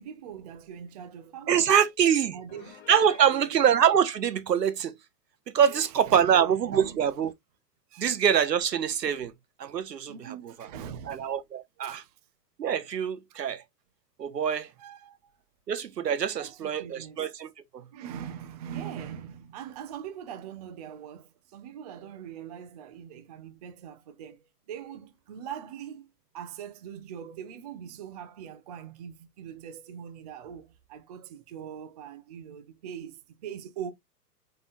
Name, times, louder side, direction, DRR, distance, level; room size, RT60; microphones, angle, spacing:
voice 1, 0.0-1.8 2.3-2.8 3.0-3.7 5.6-6.4 6.7-7.1 7.9-8.1 9.1-9.2 10.1-11.4 11.8-12.2 14.8-15.4 16.4-17.4 17.9-24.4 24.7-26.1 26.3-33.9, right 9 dB, 30° right, 0.4 m, -42 dB
voice 2, 1.5-2.4 2.9-4.9 5.5-7.3 8.0-9.3 9.6-10.4 11.1-12.0 12.6-13.6 14.2-14.7 15.7-17.8, right 8 dB, 80° right, 0.8 m, -24 dB
Piano, 2.5-3.3, left 9 dB, 45° left, 0.8 m, -49 dB
3.8 x 3.7 x 2.4 m
figure-of-eight pair, 110°, 48 cm